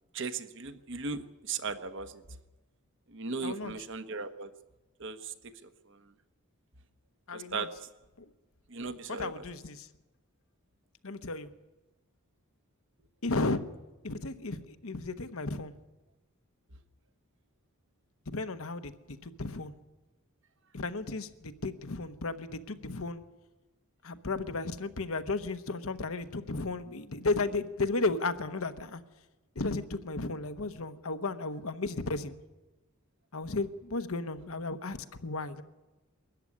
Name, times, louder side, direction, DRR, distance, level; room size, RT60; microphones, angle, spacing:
voice 1, 0.1-2.1 3.1-4.5 5.0-5.5 7.3-7.7 8.7-9.4, right 4 dB, 55° right, 9 dB, 1.2 m, -37 dB
voice 2, 3.4-3.7 7.3-7.7 8.2-8.3 9.1-9.9 11.0-11.5 13.2-13.6 14.0-15.7 18.3-19.7 20.7-23.2 24.0-29.0 29.5-32.3 33.3-35.6, left 3 dB, 70° left, 10 dB, 1.1 m, -34 dB
22.0 x 14.0 x 9.8 m, 1.1 s
head